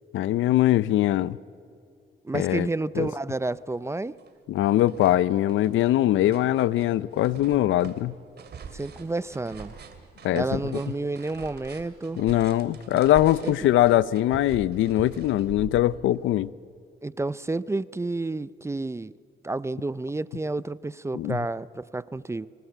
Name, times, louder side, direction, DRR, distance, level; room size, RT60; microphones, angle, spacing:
voice 1, 0.1-1.4 2.3-2.7 3.0-3.1 4.5-8.1 10.2-10.6 12.2-16.5 21.1-21.4, left 13 dB, 80° left, 0.6 m, -22 dB
voice 2, 2.2-4.2 8.7-9.7 10.3-12.2 13.4-13.5 17.0-19.1 19.4-22.5, right 2 dB, 15° right, 0.5 m, -30 dB
sound 1, 3.1-3.2 3.6-4.3 4.6-16.2, right 6 dB, 55° right, 2.4 m, -44 dB
25.5 x 19.0 x 8.0 m
cardioid pair, 90°, 20 cm